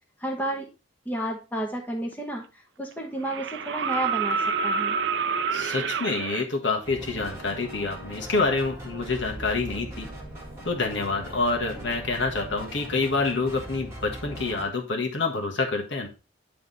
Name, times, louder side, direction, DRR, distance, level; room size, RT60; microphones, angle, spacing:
voice 1, 0.2-0.7 1.0-2.4 2.8-4.4 4.6-5.0, right 1 dB, 10° left, 0 dB, 1.1 m, -31 dB
sound 1, 2.1-2.2 3.2-6.5 8.2-8.3, right 5 dB, 60° right, 0.5 m, -27 dB
voice 2, 5.5-10.1 10.6-16.1, left 3 dB, 65° left, 2 dB, 1.5 m, -27 dB
sound 2, 6.8-14.7, right 1 dB, 15° right, 1.7 m, -40 dB
9.6 x 3.4 x 3.9 m, 0.30 s
head